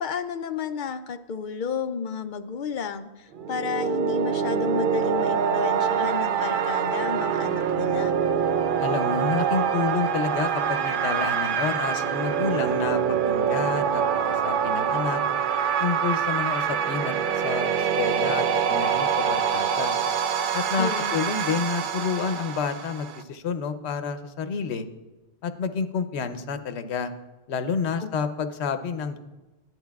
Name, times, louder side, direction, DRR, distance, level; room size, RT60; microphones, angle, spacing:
voice 1, 0.0-8.1 20.8-21.2 28.0-28.1, left 6 dB, 60° left, 10 dB, 0.6 m, -32 dB
sound 1, 3.3-23.2, right 7 dB, 60° right, 0.6 m, -25 dB
voice 2, 8.8-15.2 15.8-19.9 20.5-24.9 25.4-27.1 27.5-29.2, left 5 dB, 85° left, 10 dB, 0.9 m, -29 dB
14.0 x 10.5 x 2.3 m, 1.1 s
omnidirectional pair, 1.1 m